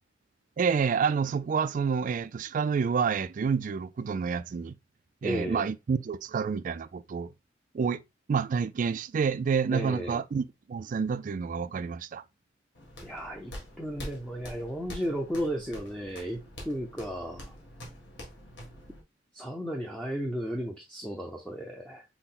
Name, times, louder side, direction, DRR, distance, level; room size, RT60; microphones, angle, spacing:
voice 1, 0.6-4.8 5.2-7.3 7.7-8.0 8.3-12.2, right 6 dB, 45° right, 0.3 m, -28 dB
voice 2, 5.2-5.7 9.7-10.2 13.0-13.5 13.8-16.4 16.6-17.5 19.3-22.0, equal, 5° left, 0.6 m, -34 dB
sound 1, 12.7-19.0, left 1 dB, 70° left, 1.6 m, -45 dB
5.9 x 2.1 x 3.7 m
head